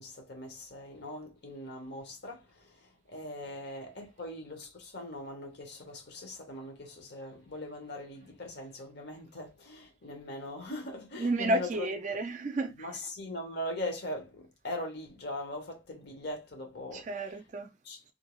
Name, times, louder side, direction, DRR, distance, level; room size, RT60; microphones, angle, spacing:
voice 1, 0.0-12.2 12.8-17.1 17.8-18.1, left 1 dB, 60° left, 0.9 m, -41 dB
voice 2, 11.1-12.9 16.9-17.7, right 1 dB, 40° right, 0.4 m, -31 dB
2.5 x 2.3 x 3.0 m
head